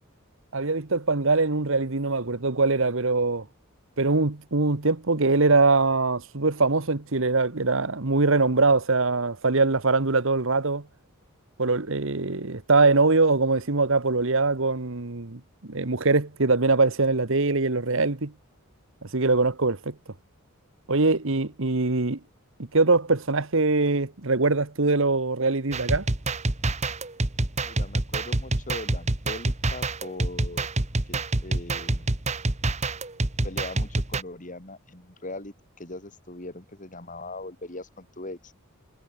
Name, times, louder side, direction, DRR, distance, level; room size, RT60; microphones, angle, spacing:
voice 1, 0.5-3.4 4.0-10.8 11.6-15.4 15.7-18.3 19.1-19.9 20.9-22.2 22.7-26.1, right 3 dB, 60° right, 1.3 m, -22 dB
sound 1, 25.7-34.2, right 2 dB, 30° right, 1.5 m, -27 dB
voice 2, 27.6-30.7 31.1-32.1 33.4-38.5, left 2 dB, 35° left, 2.8 m, -40 dB
head